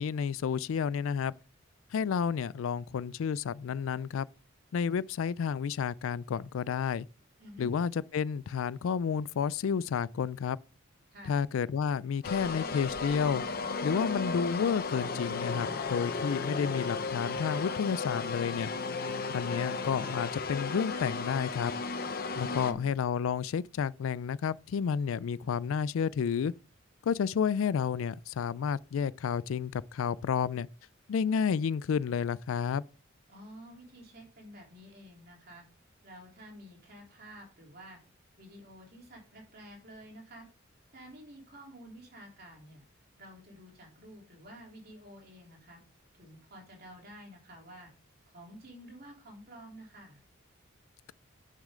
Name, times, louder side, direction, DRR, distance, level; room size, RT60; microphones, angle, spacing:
voice 1, 0.0-1.3 1.9-4.3 4.7-7.1 7.6-10.6 11.3-13.4 13.8-18.7 19.3-21.7 22.4-26.5 27.1-30.7 31.1-32.8, left 7 dB, 75° left, 0.3 m, -31 dB
voice 2, 7.4-7.7 11.1-11.4 22.4-22.9 33.3-35.6 36.0-38.0 38.4-40.5 40.9-42.8 43.2-45.8 46.2-47.9 48.3-50.2, equal, 50° right, 3.3 m, -50 dB
sound 1, 12.2-22.7, left 4 dB, 45° left, 0.8 m, -35 dB
10.0 x 6.4 x 3.7 m
head